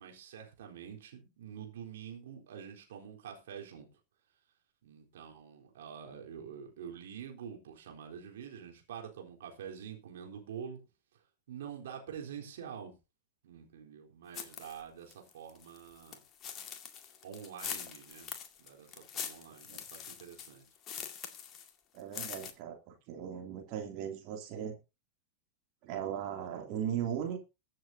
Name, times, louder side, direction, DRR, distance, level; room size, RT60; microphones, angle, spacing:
voice 1, 0.0-3.9 4.8-10.8 11.1-12.9 13.4-16.2 17.2-18.3 18.6-20.7, right 8 dB, 60° right, 4.1 m, -46 dB
sound 1, 14.3-14.8 15.1-21.7 22.0-22.5, left 8 dB, 30° left, 2.1 m, -43 dB
voice 2, 21.9-24.7 25.8-27.4, right 9 dB, 45° right, 2.8 m, -38 dB
22.5 x 7.7 x 2.8 m
figure-of-eight pair, 90°, 0 cm